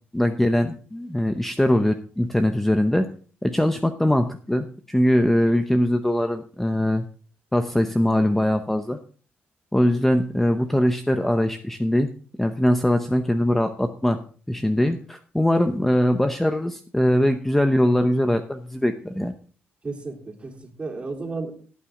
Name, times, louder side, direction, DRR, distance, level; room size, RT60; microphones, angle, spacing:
voice 1, 0.1-3.1 3.4-7.0 7.5-9.0 9.7-12.1 12.4-14.2 14.5-19.3, left 1 dB, 5° left, 8 dB, 0.8 m, -21 dB
voice 2, 19.8-21.5, right 3 dB, 25° right, 0 dB, 3.3 m, -33 dB
15.5 x 9.1 x 3.8 m, 0.40 s
cardioid pair, 115°, 4 cm